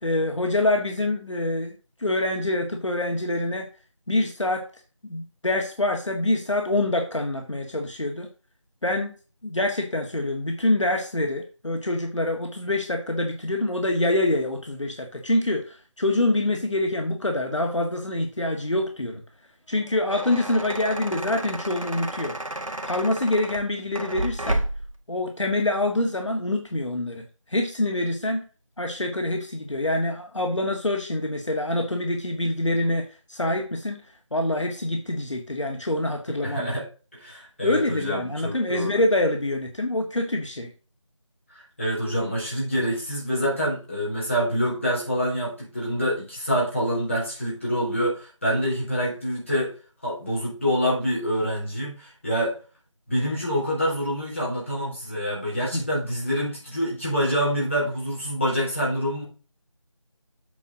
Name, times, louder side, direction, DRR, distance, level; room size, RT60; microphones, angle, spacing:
voice 1, 0.0-1.7 2.0-3.7 4.1-4.6 5.0-8.3 8.8-9.1 9.4-19.2 19.7-22.4 22.8-24.6 25.1-27.2 27.5-28.4 28.8-34.0 34.3-36.7 37.6-40.7 55.7-55.8, left 1 dB, 65° left, 3 dB, 1.7 m, -25 dB
sound 1, 19.7-25.0, right 1 dB, 85° right, 1.8 m, -32 dB
voice 2, 36.3-36.9 37.1-39.0 41.5-49.7 50.0-52.6 53.1-59.2, equal, 25° left, -6 dB, 3.8 m, -26 dB
8.2 x 6.3 x 3.9 m, 0.35 s
figure-of-eight pair, 180°, 17 cm